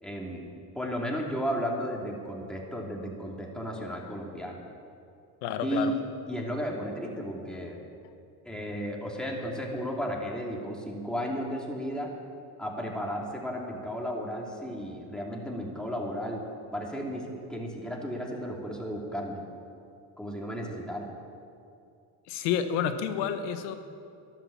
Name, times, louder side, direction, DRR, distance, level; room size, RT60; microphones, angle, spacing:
voice 1, 0.0-4.6 5.6-6.0 6.3-7.8 8.4-12.1 12.6-16.4 16.7-19.4 20.2-21.1, equal, ahead, -1 dB, 2.8 m, -34 dB
voice 2, 5.4-5.9 22.3-23.7, left 8 dB, 85° left, 9 dB, 1.3 m, -29 dB
13.5 x 11.0 x 7.4 m, 2.4 s
supercardioid pair, 75°, 49 cm